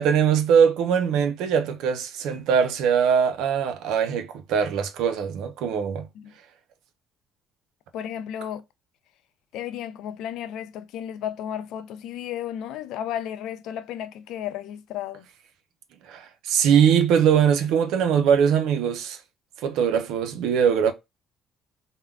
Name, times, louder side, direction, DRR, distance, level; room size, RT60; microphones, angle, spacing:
voice 1, 0.0-6.1 16.1-19.2 19.6-20.9, right 7 dB, 80° right, 0.6 m, -21 dB
voice 2, 7.9-8.6 9.5-15.3, left 10 dB, 80° left, 0.4 m, -33 dB
3.5 x 2.2 x 2.2 m
cardioid pair, 100°, 0 cm